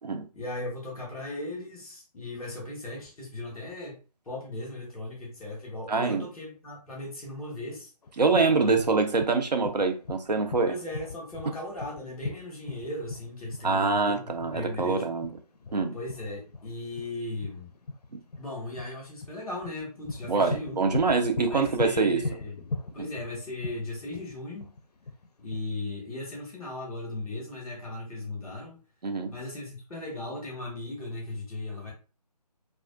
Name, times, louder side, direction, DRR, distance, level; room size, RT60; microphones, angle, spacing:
voice 1, 0.3-4.0 4.2-7.9 8.6-8.9 10.6-15.0 15.9-17.7 18.4-20.8 21.5-22.7 22.9-24.7 25.4-28.8 29.3-31.9, left 2 dB, ahead, 0.4 m, -37 dB
voice 2, 5.9-6.2 8.2-10.7 13.6-15.3 15.7-16.0 18.1-18.2 20.3-22.2 23.0-23.1 29.0-29.3, right 4 dB, 80° right, 0.6 m, -25 dB
sound 1, 8.0-25.6, left 3 dB, 70° left, 0.4 m, -39 dB
2.3 x 2.3 x 2.4 m
figure-of-eight pair, 150°, 21 cm